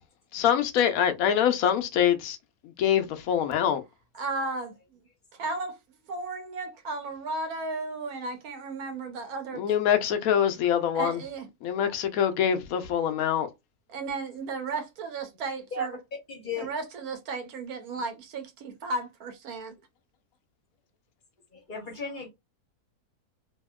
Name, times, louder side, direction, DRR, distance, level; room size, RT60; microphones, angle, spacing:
voice 1, 0.3-2.4 2.8-3.8 9.6-11.2 11.6-13.5, left 9 dB, 70° left, 0.9 m, -24 dB
voice 2, 4.1-5.0 5.4-5.8 6.1-9.7 10.9-11.5 13.9-16.0 16.6-19.7, right 3 dB, 75° right, 1.2 m, -34 dB
voice 3, 16.3-16.7 21.5-22.3, left 2 dB, 40° left, 0.9 m, -35 dB
2.8 x 2.7 x 2.2 m
omnidirectional pair, 1.6 m